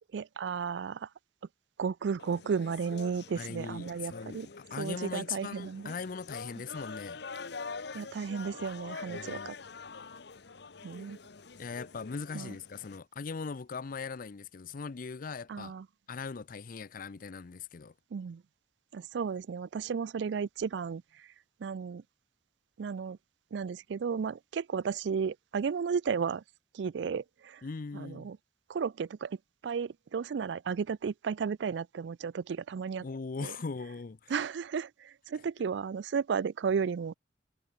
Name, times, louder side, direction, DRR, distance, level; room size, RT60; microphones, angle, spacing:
voice 1, 0.1-1.1 1.8-4.5 4.8-6.0 7.9-9.6 10.8-11.2 12.3-12.6 15.5-15.9 18.1-18.4 18.9-21.3 21.6-22.0 22.8-23.2 23.5-26.4 26.7-27.6 27.9-28.4 28.7-29.4 29.6-33.1 33.4-33.6 34.3-37.1, right 6 dB, 70° right, 0.4 m, -34 dB
sound 1, 2.2-13.0, left 4 dB, 65° left, 1.0 m, -45 dB
voice 2, 3.4-7.2 9.1-9.5 11.6-15.7 16.1-17.9 27.6-28.3 33.0-34.3, left 5 dB, 50° left, 0.5 m, -40 dB
head